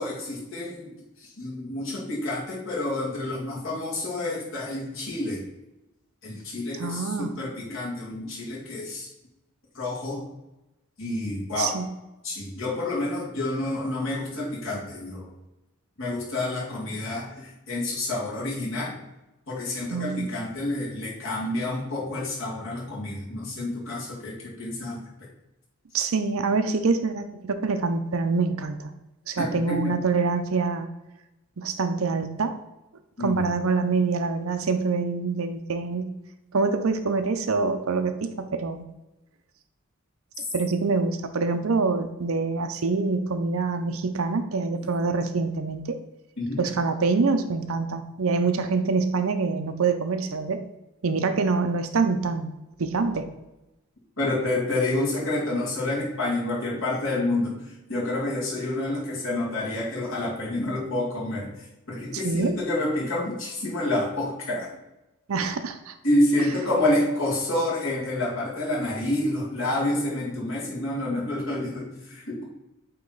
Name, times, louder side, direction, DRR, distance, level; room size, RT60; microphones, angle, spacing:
voice 1, 0.0-5.5 6.2-9.1 9.7-10.2 11.0-11.8 12.2-15.3 16.0-19.0 19.5-25.0 29.4-29.9 33.2-33.4 46.4-46.6 54.2-64.7 66.0-72.4, left 1 dB, 65° left, -4 dB, 2.1 m, -28 dB
voice 2, 6.8-7.3 11.6-11.9 19.9-20.3 25.9-28.9 29.3-30.9 31.6-32.5 33.2-36.1 36.5-38.8 40.5-46.0 46.6-50.6 51.0-52.5 52.8-53.3 62.1-62.5 65.3-65.9, right 4 dB, 80° right, 8 dB, 0.6 m, -25 dB
8.6 x 3.1 x 3.9 m, 0.98 s
head